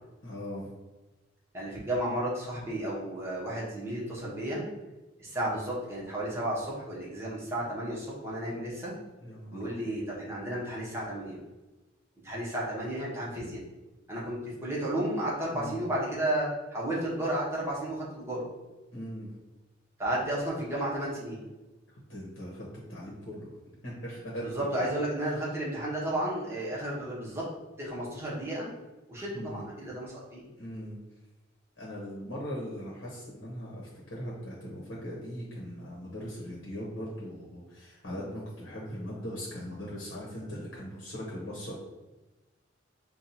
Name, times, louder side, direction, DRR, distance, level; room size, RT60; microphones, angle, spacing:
voice 1, 0.2-0.7 9.2-9.9 15.5-15.8 18.9-19.3 22.1-23.5 23.8-24.5 24.8-24.9 29.3-29.7 30.6-31.0 31.8-41.8, equal, 70° left, -4 dB, 1.0 m, -40 dB
voice 2, 1.5-4.6 5.2-8.9 9.5-11.4 12.2-13.6 14.1-18.5 20.0-21.4 24.4-27.4 27.8-28.7 29.1-30.4, right 1 dB, 15° right, -6 dB, 1.0 m, -33 dB
5.6 x 2.3 x 2.7 m, 1.1 s
head